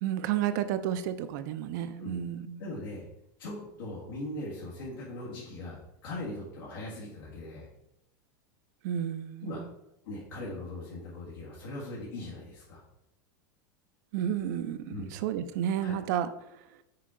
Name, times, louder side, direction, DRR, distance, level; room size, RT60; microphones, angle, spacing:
voice 1, 0.0-2.6 8.8-9.6 14.1-16.3, right 10 dB, 60° right, 11 dB, 0.5 m, -31 dB
voice 2, 2.6-3.0 3.4-7.7 9.4-9.6 10.0-12.8 14.9-15.1 15.8-16.0, left 1 dB, 85° left, -7 dB, 1.8 m, -40 dB
5.8 x 4.4 x 3.7 m, 0.85 s
supercardioid pair, 135°, 11 cm